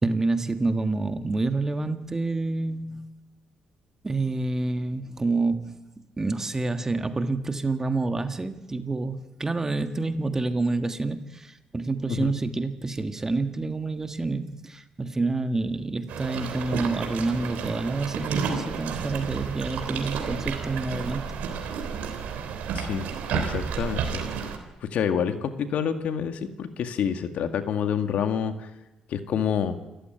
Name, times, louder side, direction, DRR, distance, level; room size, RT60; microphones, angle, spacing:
voice 1, 0.0-3.0 4.0-5.8 6.2-21.2, right 3 dB, 20° right, 8 dB, 1.6 m, -28 dB
sound 1, 16.1-24.6, right 6 dB, 85° right, 3.5 m, -31 dB
voice 2, 22.8-23.1 23.3-24.2 24.9-28.7 29.1-29.8, left 8 dB, 70° left, 8 dB, 1.9 m, -27 dB
28.0 x 14.5 x 9.2 m, 1.0 s
cardioid pair, 105°, 2 cm